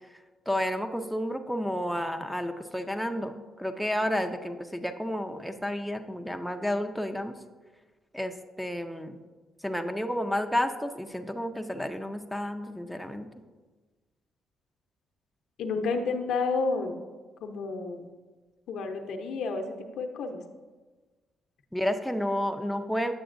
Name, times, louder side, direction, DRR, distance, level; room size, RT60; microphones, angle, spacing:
voice 1, 0.5-7.3 8.1-9.2 9.6-13.3 21.7-23.1, equal, ahead, 5 dB, 0.4 m, -31 dB
voice 2, 15.6-17.0 17.4-18.1 18.7-20.4, left 4 dB, 80° left, 4 dB, 0.6 m, -30 dB
7.9 x 6.9 x 2.6 m, 1.3 s
cardioid pair, 90°, 0 cm